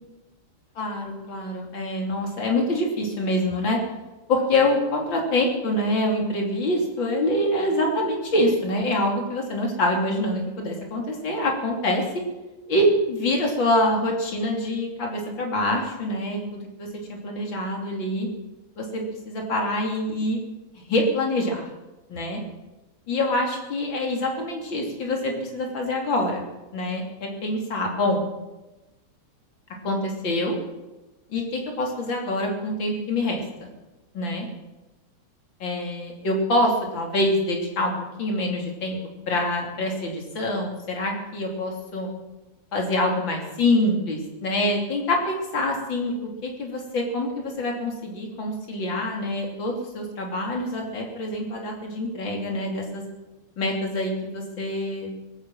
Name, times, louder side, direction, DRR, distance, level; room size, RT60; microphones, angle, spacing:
voice 1, 0.8-3.8 4.3-12.0 12.7-18.3 18.8-20.4 20.7-21.6 22.1-22.4 23.1-26.4 26.7-28.2 29.8-30.6 31.3-33.7 34.1-34.5 35.6-37.9 38.2-39.0 39.3-42.1 42.7-46.1 46.4-53.0 53.6-55.1, left 1 dB, 60° left, 0 dB, 3.6 m, -25 dB
20.0 x 9.4 x 7.6 m, 1.1 s
omnidirectional pair, 2.4 m